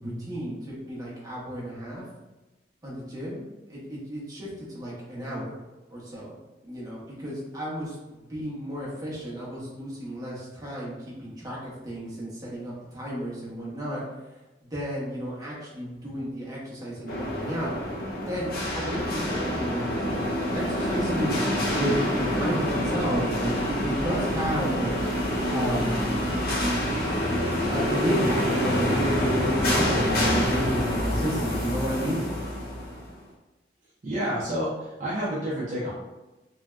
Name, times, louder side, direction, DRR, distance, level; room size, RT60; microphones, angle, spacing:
voice 1, 0.0-2.0 2.8-3.4 3.7-3.8 4.1-4.5 4.7-5.5 5.9-6.3 6.7-7.9 8.3-10.3 10.6-10.9 11.2-11.6 11.8-14.0 14.7-17.7 18.3-18.5 18.7-20.1 20.5-21.9 22.3-22.7 22.9-24.9 25.5-26.3 27.7-32.2, equal, 20° right, -6 dB, 0.9 m, -32 dB
sound 1, 17.1-33.1, equal, 55° left, 0.6 m, -27 dB
voice 2, 34.0-35.9, equal, 45° right, -6 dB, 0.5 m, -29 dB
3.1 x 2.7 x 2.3 m, 1.1 s
head